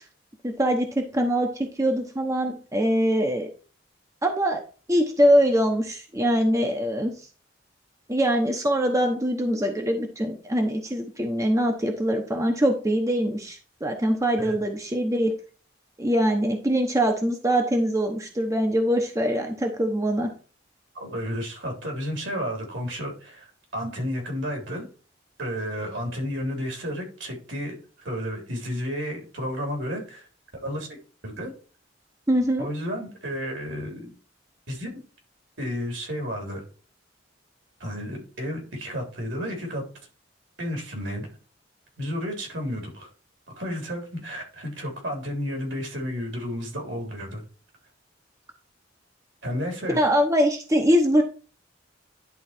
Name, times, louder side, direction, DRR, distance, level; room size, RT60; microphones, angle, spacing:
voice 1, 0.4-3.5 4.2-4.6 4.9-7.1 8.1-15.3 16.0-20.3 32.3-32.7 49.9-51.2, equal, 15° right, 3 dB, 0.9 m, -23 dB
voice 2, 20.9-23.5 23.7-24.8 25.4-30.3 30.6-31.0 31.2-31.5 32.6-34.1 34.7-35.0 35.6-36.6 37.8-39.8 40.6-41.3 42.0-43.1 43.5-47.4 49.4-50.0, equal, 75° right, 1 dB, 3.3 m, -32 dB
11.0 x 3.9 x 4.4 m, 0.37 s
head